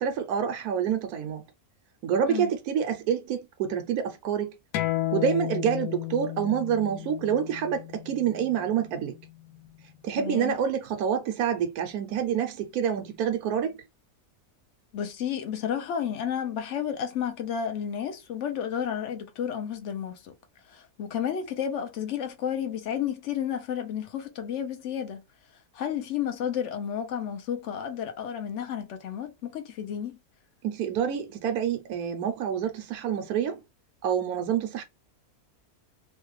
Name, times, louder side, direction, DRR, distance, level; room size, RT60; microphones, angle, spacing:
voice 1, 0.0-1.4 2.0-4.5 5.1-9.2 10.0-13.8 30.6-33.6 34.0-34.8, right 8 dB, 80° right, 1.1 m, -27 dB
sound 1, 4.7-9.9, left 15 dB, 90° left, 1.1 m, -33 dB
voice 2, 10.2-10.6 14.9-20.3 20.7-25.2 25.7-30.2, left 8 dB, 60° left, 0.9 m, -31 dB
3.1 x 2.2 x 3.1 m
omnidirectional pair, 1.6 m